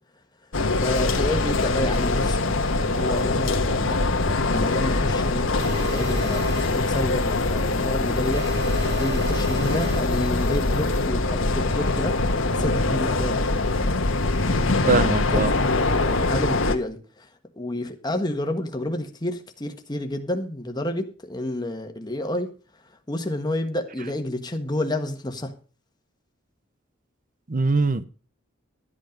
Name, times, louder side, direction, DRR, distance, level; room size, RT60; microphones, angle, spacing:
sound 1, 0.5-16.7, left 2 dB, 85° left, 1.3 m, -23 dB
voice 1, 0.8-4.0 4.5-8.5 8.8-12.2 12.5-13.4 15.3-15.4 16.0-17.3 17.6-22.5 23.1-25.6, left 1 dB, 20° left, 1.4 m, -29 dB
sound 2, 5.6-11.0, right 1 dB, 60° right, 3.6 m, -37 dB
voice 2, 14.9-15.5 27.5-28.1, right 3 dB, 45° right, 0.8 m, -22 dB
12.5 x 8.5 x 5.2 m
head